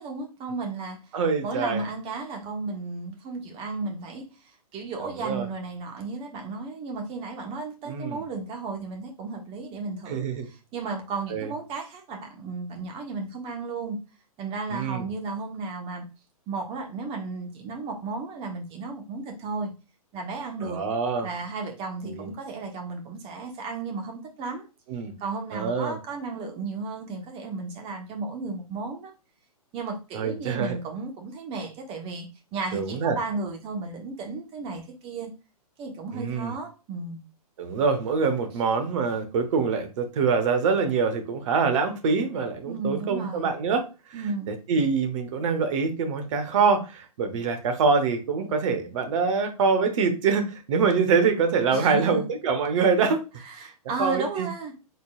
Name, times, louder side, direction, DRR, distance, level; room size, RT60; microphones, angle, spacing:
voice 1, 0.0-1.0 1.4-14.0 14.4-16.0 16.5-19.7 20.1-20.8 21.2-24.6 25.2-29.1 29.7-35.3 35.8-37.2 42.6-43.5 44.1-44.5 51.7-52.3 53.5-54.7, right 3 dB, 30° right, 1.2 m, -34 dB
voice 2, 1.1-1.8 5.0-5.5 7.8-8.2 10.1-10.5 11.3-11.5 14.7-15.1 20.6-21.3 22.0-22.3 24.9-25.1 25.5-26.0 30.1-30.8 32.7-33.2 36.1-36.5 37.6-43.9 44.5-53.2 53.6-53.7 54.0-54.5, right 5 dB, 55° right, 1.1 m, -25 dB
4.1 x 3.9 x 2.4 m
hypercardioid pair, 120°, 20 cm